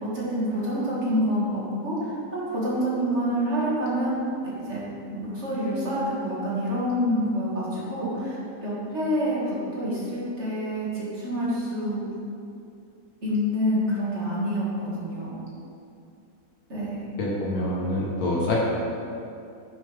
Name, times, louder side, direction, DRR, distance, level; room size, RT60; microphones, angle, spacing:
voice 1, 0.0-4.8 5.1-8.4 8.6-12.0 13.2-15.4 16.7-17.0, equal, 50° right, -7 dB, 2.4 m, -27 dB
voice 2, 17.2-18.6, left 1 dB, 80° left, -4 dB, 1.7 m, -26 dB
10.0 x 7.1 x 3.5 m, 2.5 s
omnidirectional pair, 1.6 m